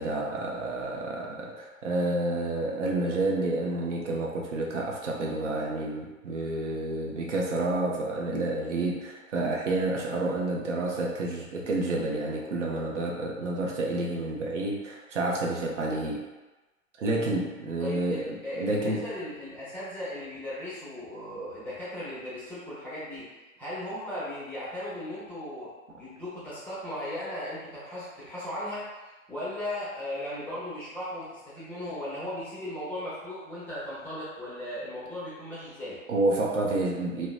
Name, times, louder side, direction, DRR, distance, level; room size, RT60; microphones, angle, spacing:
voice 1, 0.0-16.3 17.0-19.1 36.1-37.3, right 2 dB, 60° right, -2 dB, 0.6 m, -29 dB
voice 2, 17.8-23.3 23.6-25.7 26.0-36.0, left 1 dB, 5° left, -11 dB, 0.6 m, -37 dB
2.8 x 2.1 x 2.4 m, 1.1 s
figure-of-eight pair, 100°, 40 cm